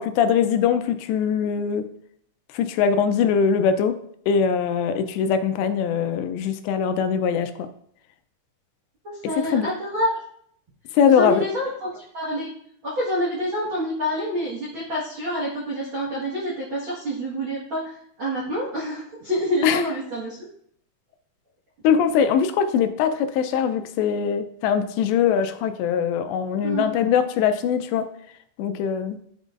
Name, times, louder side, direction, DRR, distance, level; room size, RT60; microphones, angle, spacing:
voice 1, 0.0-1.9 2.5-3.9 4.3-7.5 9.4-9.7 10.9-11.4 19.6-19.8 21.8-28.1 28.6-29.2, left 7 dB, 85° left, 9 dB, 2.7 m, -21 dB
voice 2, 9.0-10.2 11.1-12.5 12.8-20.4 26.6-26.9, equal, 90° right, -6 dB, 1.1 m, -27 dB
11.0 x 5.2 x 2.5 m, 0.67 s
omnidirectional pair, 5.1 m